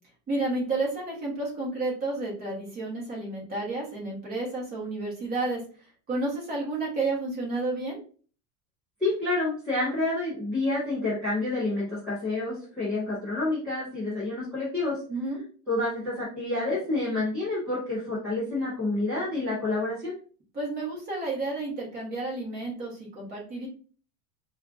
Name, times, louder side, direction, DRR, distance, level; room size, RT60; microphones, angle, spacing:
voice 1, 0.3-5.6 6.1-8.0 15.1-15.4 20.5-23.7, right 2 dB, 20° right, -4 dB, 1.0 m, -31 dB
voice 2, 9.0-15.0 15.7-20.2, left 2 dB, 5° right, -13 dB, 0.3 m, -28 dB
4.5 x 2.4 x 2.4 m, 0.42 s
supercardioid pair, 180°, 44 cm